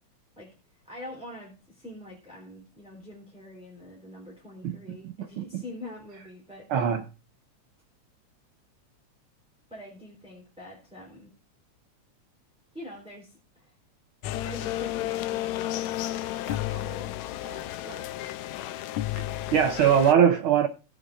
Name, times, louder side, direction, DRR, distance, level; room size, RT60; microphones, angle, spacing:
voice 1, 0.8-6.7 9.7-11.3 12.7-13.7 14.4-16.2 16.4-18.1, left 1 dB, ahead, 3.4 m, -44 dB
voice 2, 5.0-5.6 6.7-7.0 19.2-19.3 19.5-20.7, right 8 dB, 75° right, 1.2 m, -22 dB
sound 1, 14.2-20.1, left 14 dB, 80° left, 1.9 m, -32 dB
19.5 x 6.8 x 2.5 m
omnidirectional pair, 3.3 m